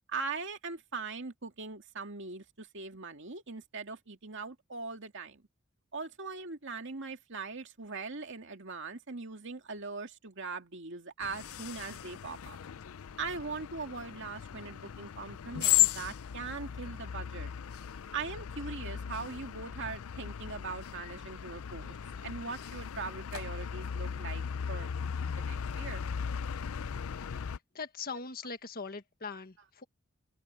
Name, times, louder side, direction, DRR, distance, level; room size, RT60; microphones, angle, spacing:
voice 1, 0.1-5.4 5.9-12.6 13.2-17.5 18.1-22.0 22.2-24.9 25.4-26.0, right 4 dB, 60° right, 2.3 m, -41 dB
sound 1, 11.2-27.6, left 10 dB, 80° left, 0.5 m, -36 dB
voice 2, 26.8-29.8, left 4 dB, 45° left, 1.6 m, -42 dB
open air
head